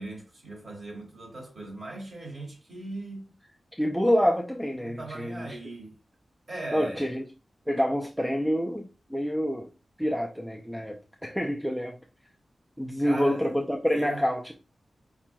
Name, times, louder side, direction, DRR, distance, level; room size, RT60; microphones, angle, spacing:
voice 1, 0.0-3.3 4.8-6.0 6.5-7.1 13.0-13.5 13.9-14.3, right 2 dB, 40° right, 2.2 m, -39 dB
voice 2, 3.8-5.4 6.7-7.2 7.7-9.7 10.0-11.9 12.8-14.5, equal, 5° right, 0.5 m, -27 dB
4.9 x 4.4 x 2.3 m
wide cardioid pair, 130°, 0 cm